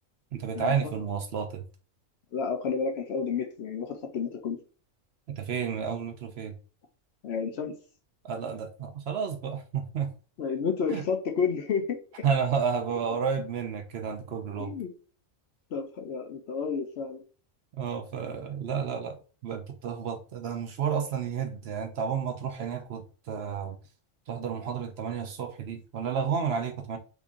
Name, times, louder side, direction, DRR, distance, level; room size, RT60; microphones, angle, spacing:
voice 1, 0.3-1.6 5.4-6.5 8.2-10.1 10.9-11.0 12.2-14.7 17.8-19.2 19.4-23.8 24.3-27.0, right 6 dB, 60° right, 0.7 m, -31 dB
voice 2, 2.3-4.6 7.2-7.8 10.4-12.0 14.6-14.9 15.7-17.2, left 5 dB, 60° left, 0.8 m, -30 dB
3.6 x 2.5 x 3.6 m
omnidirectional pair, 1.3 m